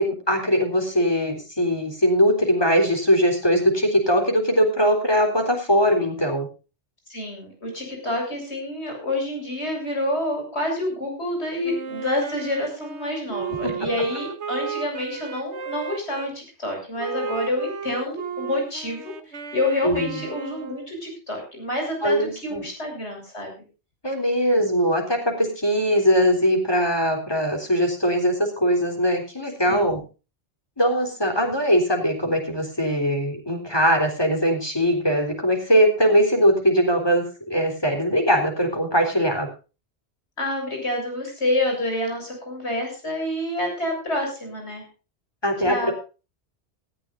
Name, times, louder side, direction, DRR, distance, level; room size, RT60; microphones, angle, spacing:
voice 1, 0.0-6.5 13.6-13.9 19.8-20.2 22.0-22.6 24.0-30.0 30.8-39.5 45.4-45.9, equal, 20° left, 3 dB, 4.0 m, -21 dB
voice 2, 7.1-19.1 19.5-23.5 29.7-30.0 40.4-44.8 45.6-45.9, left 1 dB, 75° left, 2 dB, 7.6 m, -28 dB
Wind instrument woodwind instrument, 11.6-16.3 17.0-20.9, right 7 dB, 85° right, 1.5 m, -34 dB
18.5 x 15.0 x 2.6 m, 0.32 s
omnidirectional pair, 1.1 m